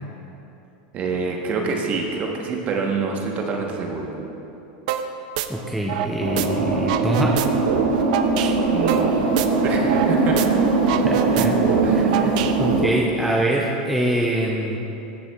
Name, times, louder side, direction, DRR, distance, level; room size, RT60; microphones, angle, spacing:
voice 1, 0.9-4.1 8.7-9.2 9.6-10.4 11.8-12.4, right 4 dB, 30° right, 1 dB, 0.9 m, -26 dB
sound 1, 4.9-5.1 5.4-6.5 6.8-10.1 10.4-10.5 10.8-12.9, right 11 dB, 60° right, 0.4 m, -26 dB
voice 2, 5.5-7.4 8.4-8.6 11.0-11.6 11.9-14.8, right 1 dB, ahead, -2 dB, 0.4 m, -24 dB
sound 2, 6.2-12.8, right 3 dB, 80° right, 1.3 m, -21 dB
14.0 x 6.8 x 2.3 m, 2.9 s
supercardioid pair, 150°, 5 cm